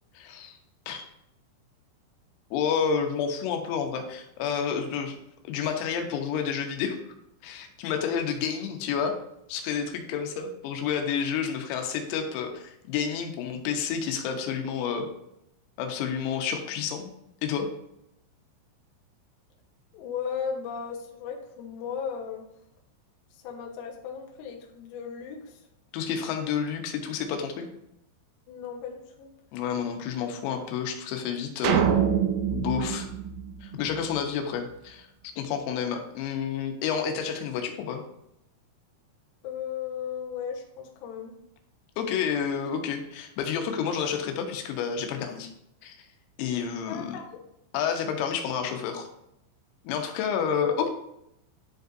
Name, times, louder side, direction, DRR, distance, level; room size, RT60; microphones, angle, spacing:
voice 1, 0.2-0.6 0.9-1.0 2.5-5.2 5.5-7.0 7.4-9.1 9.5-15.1 15.8-17.1 17.4-17.7 25.9-27.7 29.5-31.9 32.5-33.1 33.6-35.1 35.4-38.0 42.0-45.5 45.8-46.0 46.4-47.2 47.7-49.1 49.9-50.9, left 7 dB, 90° left, 4 dB, 3.7 m, -30 dB
voice 2, 19.9-22.5 23.4-25.6 28.5-29.3 39.4-41.4 46.9-47.4 50.6-50.9, left 7 dB, 75° left, 0 dB, 2.8 m, -36 dB
sound 1, 31.6-34.1, right 8 dB, 85° right, 3.1 m, -25 dB
11.0 x 5.3 x 2.6 m, 0.79 s
omnidirectional pair, 6.0 m